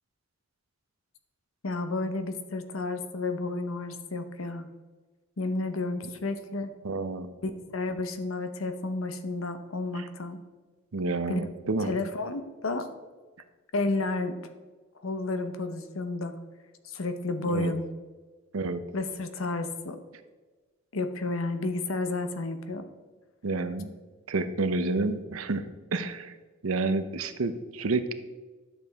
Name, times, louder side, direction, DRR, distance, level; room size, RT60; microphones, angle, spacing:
voice 1, 1.6-4.7 5.4-6.7 7.4-10.4 11.3-11.4 11.8-12.9 13.7-14.4 15.0-16.3 16.8-17.8 18.9-20.0 20.9-22.9, left 2 dB, 75° left, 9 dB, 0.9 m, -31 dB
voice 2, 6.8-7.3 10.0-10.1 10.9-11.9 17.5-17.7 18.5-18.8 23.4-23.9 24.3-25.6 25.9-26.3 26.6-28.1, right 3 dB, 85° right, 10 dB, 0.7 m, -29 dB
11.0 x 6.8 x 3.5 m, 1.3 s
head